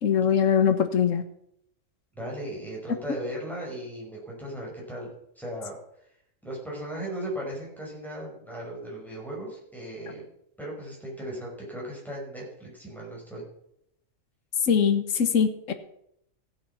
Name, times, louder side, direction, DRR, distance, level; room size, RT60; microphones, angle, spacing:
voice 1, 0.0-1.2 14.6-15.7, left 7 dB, 70° left, 9 dB, 1.5 m, -22 dB
voice 2, 2.1-5.1 5.4-5.7 6.4-10.2 10.6-13.4, right 1 dB, ahead, -5 dB, 5.6 m, -37 dB
15.5 x 8.8 x 5.7 m, 0.75 s
omnidirectional pair, 1.4 m